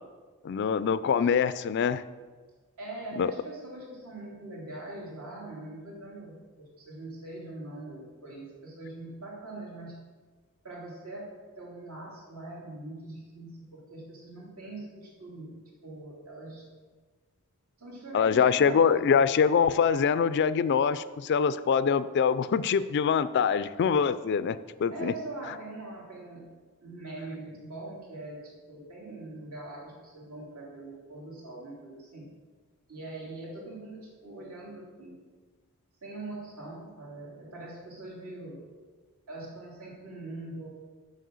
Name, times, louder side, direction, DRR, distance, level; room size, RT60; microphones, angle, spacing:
voice 1, 0.4-2.0 3.2-3.3 18.1-25.1, left 6 dB, 50° left, 15 dB, 0.3 m, -24 dB
voice 2, 2.8-9.9 10.6-11.3 11.6-15.5 15.8-16.7 17.8-19.4 24.9-26.4 26.8-32.3 32.9-35.2 36.0-38.6 39.3-40.7, right 2 dB, 75° right, -4 dB, 3.0 m, -42 dB
7.4 x 5.4 x 7.0 m, 1.4 s
head